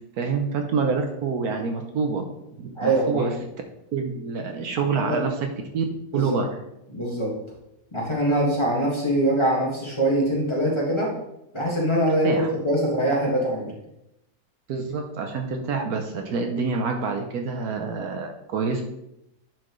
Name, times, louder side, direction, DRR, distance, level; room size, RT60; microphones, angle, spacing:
voice 1, 0.2-2.2 2.6-3.4 3.9-5.5 5.7-5.8 6.1-6.5 12.2-12.5 14.7-18.8, right 5 dB, 70° right, 4 dB, 1.1 m, -27 dB
voice 2, 2.8-3.3 4.9-5.2 6.1-6.4 6.9-7.3 7.9-11.1 11.5-13.7, right 1 dB, 15° left, -4 dB, 1.7 m, -23 dB
10.5 x 4.5 x 3.1 m, 0.85 s
omnidirectional pair, 1.8 m